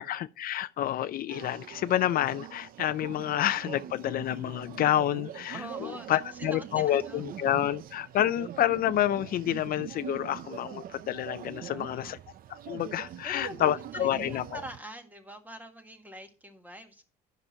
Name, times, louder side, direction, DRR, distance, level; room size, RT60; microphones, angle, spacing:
voice 1, 0.0-5.6 6.1-12.2 12.5-14.4, left 12 dB, 60° left, 0.5 m, -28 dB
sound 1, 1.3-14.8, right 10 dB, 60° right, 0.6 m, -43 dB
voice 2, 5.5-7.5 11.6-12.1 13.2-17.0, equal, 10° right, 1.7 m, -44 dB
10.5 x 6.0 x 4.4 m
cardioid pair, 110°, 17 cm